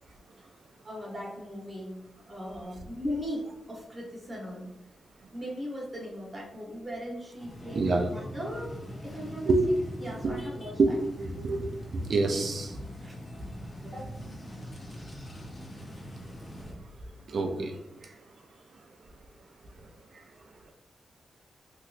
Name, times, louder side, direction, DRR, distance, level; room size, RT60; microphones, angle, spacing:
voice 1, 0.8-4.7 5.3-9.5 10.0-10.9 13.0-13.2 13.8-14.3, equal, 25° right, -3 dB, 0.8 m, -38 dB
sound 1, 7.4-16.7, equal, 35° left, 0.6 m, -42 dB
voice 2, 7.7-8.1 9.5-9.6 10.2-10.3 10.8-10.9 11.2-11.7 12.1-12.8 17.3-17.7, right 3 dB, 55° right, 3 dB, 0.3 m, -26 dB
3.1 x 2.9 x 2.4 m, 0.91 s
wide cardioid pair, 155°, 0 cm